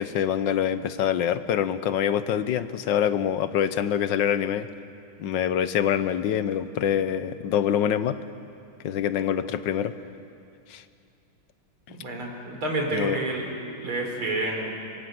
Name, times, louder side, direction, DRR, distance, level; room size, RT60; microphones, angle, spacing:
voice 1, 0.0-4.7 5.2-8.2 8.8-9.9 10.7-10.8 12.9-13.2, left 9 dB, 65° left, 12 dB, 1.5 m, -25 dB
voice 2, 11.9-14.7, right 2 dB, 80° right, 1 dB, 4.9 m, -29 dB
26.0 x 23.0 x 7.8 m, 2.6 s
omnidirectional pair, 2.3 m